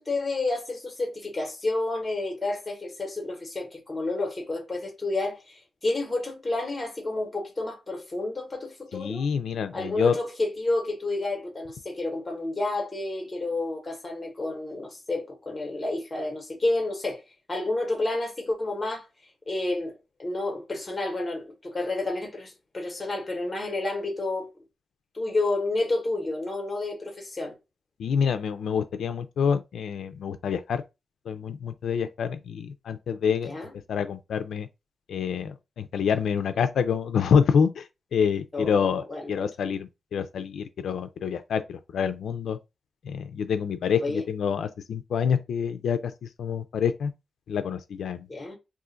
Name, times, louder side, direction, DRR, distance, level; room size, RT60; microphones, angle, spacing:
voice 1, 0.0-9.2 9.7-17.2 17.5-19.0 19.5-24.5 25.1-27.5 33.4-33.7 38.5-39.5 44.0-44.2 48.3-48.6, left 2 dB, 15° left, 0.9 m, -30 dB
voice 2, 8.9-10.2 28.0-30.8 31.3-33.6 33.9-34.7 35.1-37.9 38.1-42.6 43.0-47.1 47.5-48.3, left 7 dB, 85° left, 0.3 m, -27 dB
2.5 x 2.4 x 3.8 m
wide cardioid pair, 180°, 0 cm